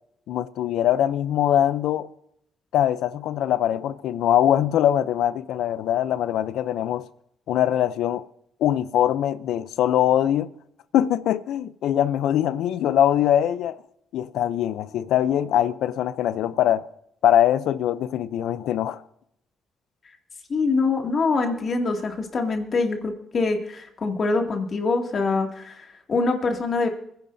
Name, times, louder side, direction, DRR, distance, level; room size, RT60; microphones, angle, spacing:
voice 1, 0.3-2.1 2.7-7.1 7.5-8.2 8.6-10.5 10.9-13.8 14.1-16.9 17.2-19.0, left 11 dB, 85° left, 0.6 m, -22 dB
voice 2, 20.5-26.9, left 3 dB, 45° left, 2.3 m, -24 dB
26.0 x 10.5 x 2.7 m
cardioid pair, 90°, 0 cm